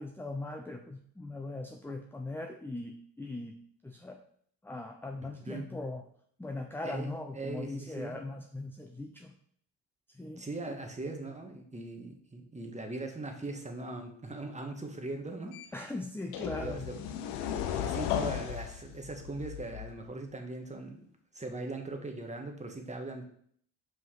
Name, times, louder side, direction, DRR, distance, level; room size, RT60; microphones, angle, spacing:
voice 1, 0.0-3.6 3.8-4.2 4.6-6.0 6.4-9.3 10.2-10.4 15.7-16.8, left 2 dB, 5° left, 4 dB, 0.7 m, -40 dB
voice 2, 6.8-8.2 10.4-15.5 16.5-17.3 17.7-21.0 21.3-23.2, right 2 dB, 15° right, 3 dB, 1.6 m, -40 dB
sound 1, 15.5-15.7 16.3-20.1, left 9 dB, 85° left, 0.8 m, -35 dB
5.4 x 5.1 x 5.9 m, 0.62 s
supercardioid pair, 75°, 41 cm